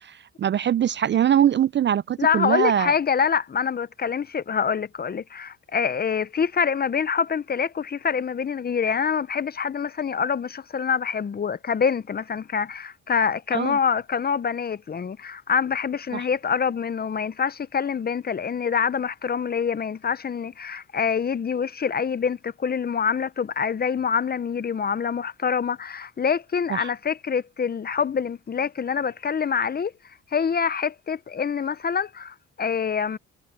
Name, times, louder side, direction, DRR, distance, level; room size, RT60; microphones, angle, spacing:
voice 1, 0.0-2.9 13.5-13.8 16.1-16.2 26.7-26.9, right 10 dB, 40° right, 0.4 m, -22 dB
voice 2, 2.2-29.9 30.3-33.2, left 6 dB, 30° left, 0.7 m, -25 dB
cardioid pair, 90°, 30 cm